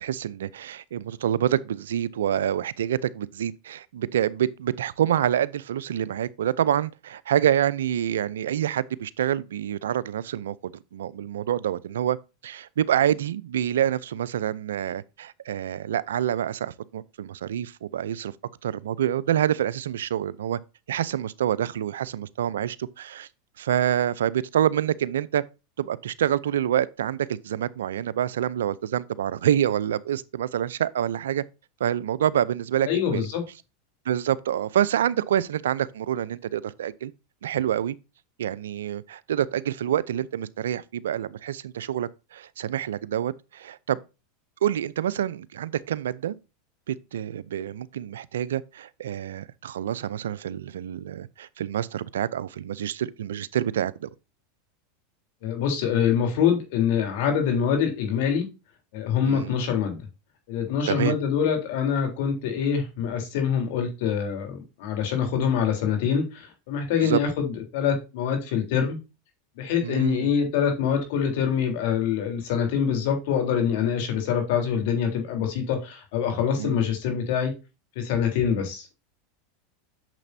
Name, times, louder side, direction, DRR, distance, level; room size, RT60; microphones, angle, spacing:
voice 1, 0.0-12.2 12.4-18.3 18.6-20.6 20.9-23.3 23.6-25.4 25.8-31.4 31.8-33.2 34.1-37.1 37.4-38.0 38.4-44.0 44.6-46.3 46.9-54.1 59.3-59.6 60.9-61.1 67.0-67.2 69.8-70.3 76.6-76.8, right 10 dB, 85° right, 0.5 m, -27 dB
voice 2, 32.9-33.4 55.4-58.5 58.9-60.0 60.5-69.0 69.6-77.5 78.0-79.0, left 7 dB, 65° left, 3.5 m, -25 dB
9.0 x 6.8 x 2.7 m
hypercardioid pair, 105°, 0 cm